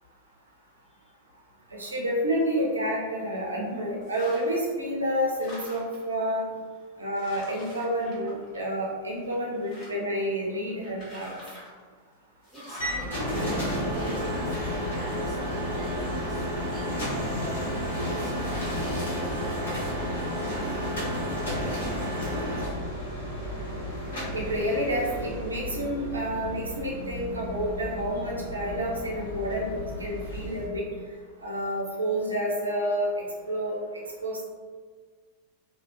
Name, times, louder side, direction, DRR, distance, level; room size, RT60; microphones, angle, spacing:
voice 1, 1.7-6.5 7.0-11.3 24.3-30.8 31.4-34.4, equal, 75° right, -3 dB, 0.5 m, -29 dB
sound 1, 4.0-4.7 5.0-6.1 6.7-6.8 7.2-8.9 9.2-10.2 10.8-11.8 12.4-13.1 13.9-14.5, left 1 dB, 35° left, 1.0 m, -46 dB
voice 2, 12.5-20.5, right 1 dB, 5° right, -6 dB, 0.7 m, -44 dB
sound 2, 12.8-30.7, equal, 65° left, 0.9 m, -32 dB
2.6 x 2.1 x 2.4 m, 1.5 s
figure-of-eight pair, 90°, 0 cm